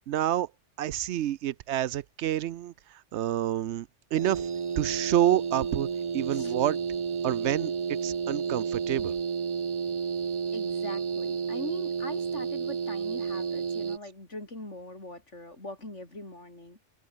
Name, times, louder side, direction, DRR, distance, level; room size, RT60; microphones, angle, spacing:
voice 1, 0.1-0.5 0.8-2.7 3.1-4.5 4.8-5.9 6.1-6.8 7.2-9.1, right 12 dB, 70° right, 0.9 m, -28 dB
sound 1, 4.1-14.0, right 6 dB, 40° right, 0.4 m, -31 dB
voice 2, 10.5-16.8, left 2 dB, 75° left, 6.6 m, -42 dB
open air
omnidirectional pair, 1.2 m